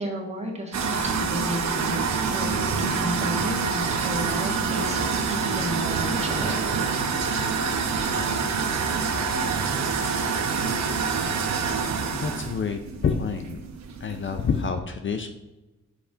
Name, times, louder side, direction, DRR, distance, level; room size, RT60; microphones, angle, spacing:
voice 1, 0.0-6.8, equal, 20° right, 0 dB, 1.6 m, -33 dB
sound 1, 0.7-14.7, right 5 dB, 65° right, 0.9 m, -26 dB
voice 2, 12.1-13.6 14.0-15.3, left 5 dB, 40° left, 7 dB, 0.6 m, -28 dB
5.7 x 4.1 x 4.9 m, 1.0 s
cardioid pair, 95°, 29 cm